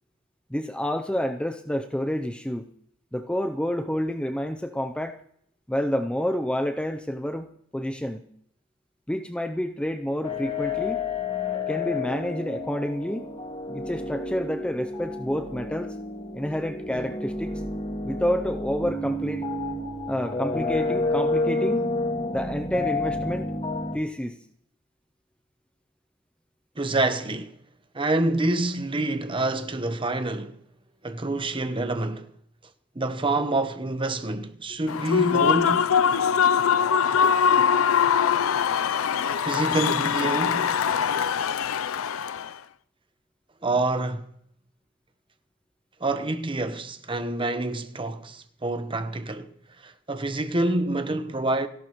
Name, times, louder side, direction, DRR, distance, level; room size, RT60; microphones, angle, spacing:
voice 1, 0.5-2.7 3.1-5.2 5.7-7.5 7.7-8.3 9.1-11.0 11.7-13.3 13.7-15.9 16.3-17.5 18.0-19.5 20.1-21.9 22.3-23.5 23.9-24.4, equal, 5° left, 0.6 m, -29 dB
sound 1, 10.2-24.0, left 2 dB, 30° left, 1.9 m, -30 dB
voice 2, 26.8-27.6 27.9-30.6 31.0-32.3 32.9-35.9 39.4-40.8 43.6-44.3 46.0-49.5 49.8-51.7, right 2 dB, 25° right, 1.1 m, -27 dB
Human voice / Cheering / Applause, 34.9-42.5, left 7 dB, 80° left, 0.5 m, -22 dB
30.0 x 11.5 x 3.1 m
head